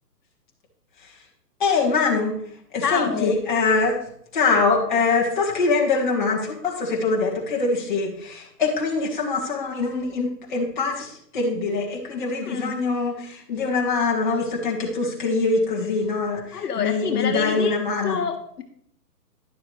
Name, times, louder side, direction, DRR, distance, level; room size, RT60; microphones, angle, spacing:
voice 1, 1.6-2.4 2.7-4.0 4.3-18.2, left 4 dB, 30° left, -2 dB, 1.6 m, -23 dB
voice 2, 2.8-3.4 12.4-12.8 16.5-17.8 18.0-18.6, left 6 dB, 65° left, 6 dB, 0.9 m, -27 dB
11.0 x 7.0 x 3.2 m, 0.67 s
hypercardioid pair, 175°, 49 cm